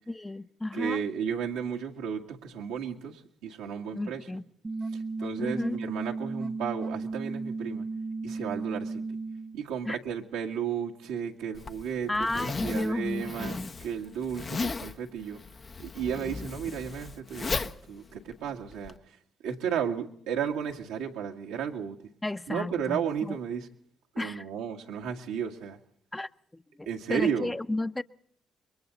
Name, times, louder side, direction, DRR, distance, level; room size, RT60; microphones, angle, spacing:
voice 1, 0.1-1.0 3.9-4.4 5.4-5.8 9.9-10.0 12.1-13.7 22.2-23.4 24.2-24.4 26.1-26.3 26.8-28.0, left 2 dB, 15° left, 0.9 m, -32 dB
voice 2, 0.7-4.2 5.2-7.9 8.2-9.0 9.5-15.4 15.8-19.0 19.4-22.0 22.5-23.7 24.1-25.8 26.9-27.5, right 7 dB, 85° right, 1.9 m, -33 dB
sound 1, 4.6-9.6, right 3 dB, 30° right, 1.2 m, -34 dB
Zipper (clothing), 11.5-19.0, left 4 dB, 45° left, 1.0 m, -36 dB
28.0 x 23.0 x 4.0 m
hypercardioid pair, 50°, 0 cm